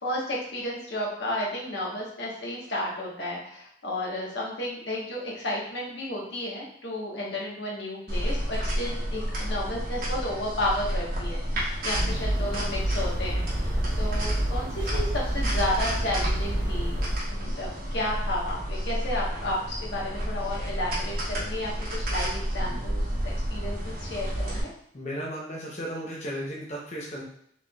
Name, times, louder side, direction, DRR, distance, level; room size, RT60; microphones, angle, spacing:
voice 1, 0.0-16.9 17.3-24.7, left 1 dB, 80° left, -3 dB, 1.2 m, -32 dB
sound 1, 8.1-24.6, equal, 55° right, 1.5 m, -30 dB
sound 2, 11.9-17.2, right 1 dB, 85° right, 1.0 m, -29 dB
voice 2, 24.9-27.2, equal, 40° left, -3 dB, 0.7 m, -35 dB
4.9 x 3.4 x 2.3 m, 0.66 s
head